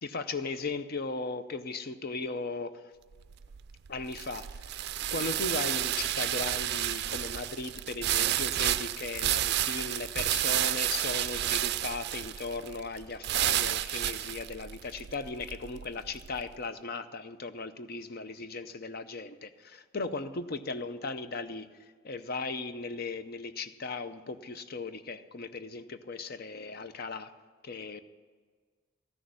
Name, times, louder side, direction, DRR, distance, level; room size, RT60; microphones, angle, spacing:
voice 1, 0.0-2.9 3.9-4.7 5.1-21.7 22.0-27.3 27.6-28.0, left 3 dB, 50° left, 11 dB, 0.6 m, -37 dB
sound 1, 3.1-16.4, right 13 dB, 55° right, 0.4 m, -31 dB
14.0 x 6.4 x 9.5 m, 1.5 s
head